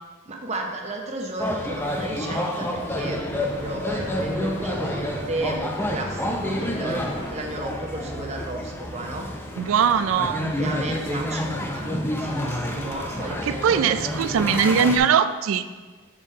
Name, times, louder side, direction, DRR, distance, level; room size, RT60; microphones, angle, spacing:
voice 1, 0.3-9.3 10.6-14.0, right 2 dB, 30° right, 1 dB, 0.7 m, -33 dB
sound 1, 1.4-15.0, left 1 dB, 10° left, 0.4 m, -29 dB
sound 2, 2.8-14.6, equal, 45° left, 1.6 m, -40 dB
voice 2, 9.6-10.5 13.4-15.6, right 7 dB, 75° right, 12 dB, 0.3 m, -21 dB
7.3 x 3.4 x 4.2 m, 1.4 s
head